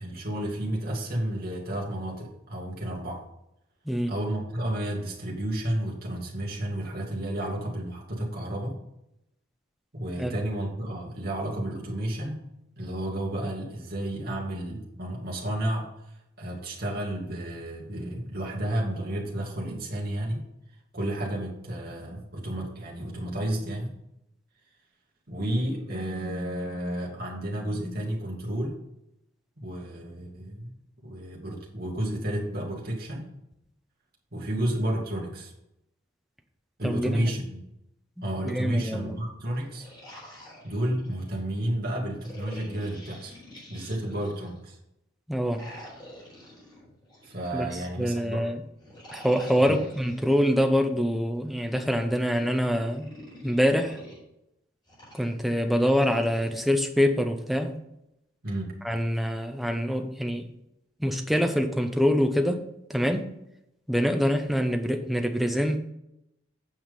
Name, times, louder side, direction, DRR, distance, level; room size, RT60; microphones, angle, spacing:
voice 1, 0.0-3.2 4.1-8.8 9.9-12.5 12.8-16.1 16.4-20.4 20.9-23.9 25.3-28.8 29.6-30.7 31.0-33.3 34.3-35.5 36.8-37.6 38.2-39.9 40.6-43.4 43.7-44.8 47.2-48.4 49.6-49.8 58.4-58.7, right 1 dB, 45° right, -2 dB, 2.4 m, -31 dB
voice 2, 36.8-37.3 38.2-39.2 45.3-45.7 47.5-48.6 49.1-53.1 53.4-54.0 55.2-57.8 58.8-60.5 61.0-62.6 62.9-63.3 63.9-65.8, equal, ahead, 4 dB, 0.8 m, -25 dB
sound 1, 39.5-41.4 42.2-44.6 45.4-48.0 48.8-50.4 51.4-54.2 54.9-56.5, left 1 dB, 20° left, 4.1 m, -47 dB
8.9 x 6.0 x 5.4 m, 0.84 s
head